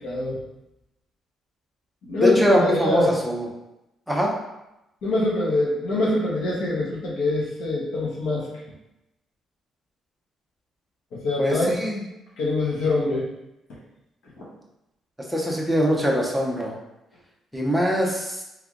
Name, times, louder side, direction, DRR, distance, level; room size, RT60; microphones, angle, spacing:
voice 1, 0.0-0.4 2.1-3.1 5.0-8.5 11.1-11.8 12.4-13.3, left 2 dB, 90° left, -5 dB, 1.1 m, -24 dB
voice 2, 2.2-3.5 4.1-4.3 11.4-12.0 15.3-16.7 17.5-18.4, equal, ahead, -3 dB, 0.6 m, -22 dB
3.4 x 3.2 x 2.4 m, 0.91 s
cardioid pair, 145°, 0 cm